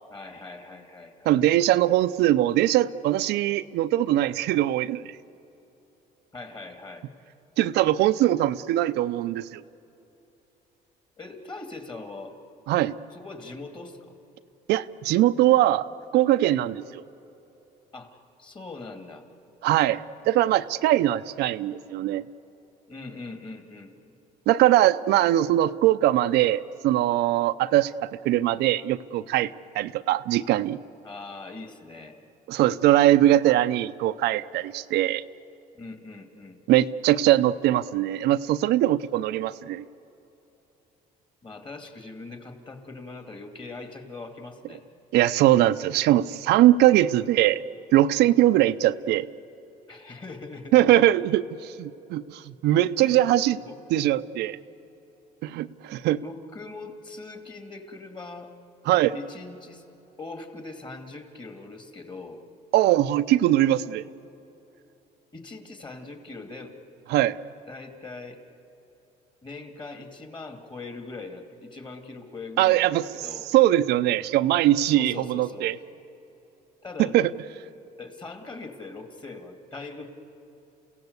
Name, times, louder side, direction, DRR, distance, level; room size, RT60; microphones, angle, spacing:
voice 1, 0.1-1.3 6.3-7.1 11.2-12.4 13.1-14.0 17.9-19.2 22.9-23.9 31.0-32.2 35.7-36.6 41.4-44.8 49.9-50.8 53.0-53.2 53.6-53.8 56.2-58.5 59.1-59.8 60.2-62.4 65.3-66.7 67.7-68.4 69.4-73.5 74.9-75.8 76.8-77.2 78.0-80.1, left 3 dB, 25° left, 6 dB, 2.5 m, -41 dB
voice 2, 1.3-5.2 7.6-9.6 12.7-12.9 14.7-15.9 16.1-17.0 19.6-22.2 24.5-30.8 32.5-35.2 36.7-39.8 45.1-47.6 47.9-49.3 50.7-53.6 53.9-54.6 55.4-56.2 58.9-59.1 62.7-64.0 67.1-67.4 72.6-73.0 73.5-75.8 77.1-77.3, right 14 dB, 80° right, 11 dB, 0.6 m, -21 dB
30.0 x 16.5 x 8.1 m, 3.0 s
cardioid pair, 110°, 17 cm